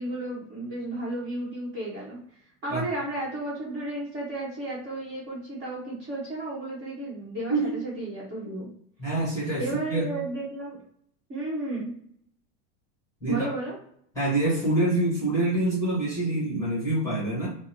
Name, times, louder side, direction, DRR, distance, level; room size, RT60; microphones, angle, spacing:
voice 1, 0.0-2.2 2.6-8.7 9.6-10.8 11.3-11.9 13.3-13.8, right 2 dB, 25° right, -7 dB, 1.1 m, -33 dB
voice 2, 9.0-9.6 9.9-10.1 13.2-13.5 14.1-17.6, right 2 dB, 10° left, -8 dB, 1.1 m, -26 dB
2.8 x 2.0 x 4.0 m, 0.66 s
supercardioid pair, 170°, 40 cm